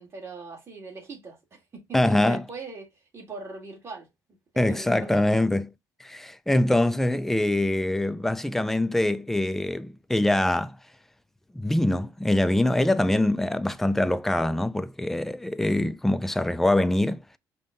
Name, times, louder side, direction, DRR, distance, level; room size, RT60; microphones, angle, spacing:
voice 1, 0.0-4.1 4.7-5.3, right 4 dB, 35° right, 1.9 m, -41 dB
voice 2, 1.9-2.4 4.6-5.7 6.0-10.8 11.6-17.2, left 1 dB, 5° left, 0.3 m, -24 dB
5.4 x 2.2 x 3.7 m
cardioid pair, 105°, 8 cm